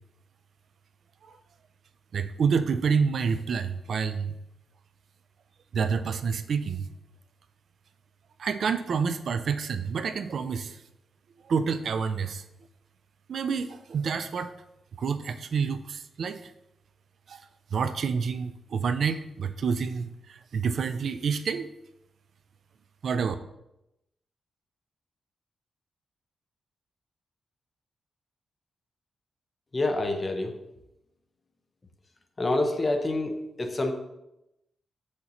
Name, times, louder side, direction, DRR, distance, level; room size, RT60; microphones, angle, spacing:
voice 1, 2.1-4.3 5.7-6.9 8.4-10.8 11.4-12.4 13.3-14.5 15.0-16.5 17.3-17.4 17.7-21.7 23.0-23.4, right 6 dB, 55° right, 10 dB, 0.3 m, -28 dB
voice 2, 29.7-30.5 32.4-33.9, left 2 dB, 25° left, 5 dB, 0.7 m, -27 dB
6.9 x 6.3 x 3.0 m, 0.88 s
wide cardioid pair, 165°, 0 cm